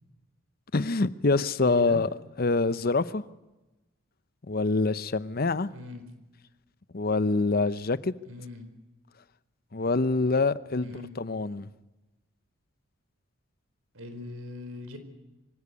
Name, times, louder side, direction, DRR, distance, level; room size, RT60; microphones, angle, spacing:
voice 1, 0.7-2.1 2.4-3.2 4.5-5.7 6.9-8.1 9.7-11.7, left 3 dB, 45° left, 0.7 m, -25 dB
voice 2, 1.6-2.0 5.7-6.0 8.3-8.7 10.8-11.1 13.9-15.0, left 1 dB, 80° right, 4.4 m, -40 dB
24.5 x 17.0 x 9.7 m
head